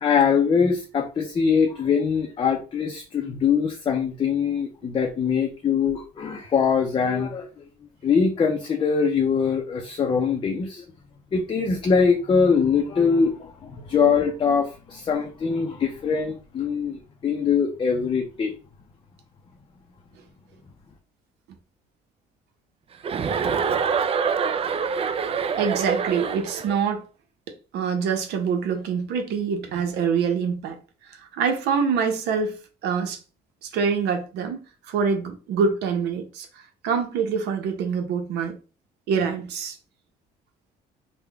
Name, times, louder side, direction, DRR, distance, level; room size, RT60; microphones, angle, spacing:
voice 1, 0.0-7.5 8.0-10.8 11.3-18.5, left 6 dB, 30° left, 0.5 m, -22 dB
Chuckle chortle, 23.0-26.8, right 6 dB, 35° right, 0.4 m, -25 dB
voice 2, 25.6-27.1 27.7-30.8 31.0-33.2 33.6-36.5 36.8-38.6 39.1-39.8, right 6 dB, 80° right, 0.8 m, -25 dB
3.5 x 2.2 x 3.4 m
cardioid pair, 110°, 17 cm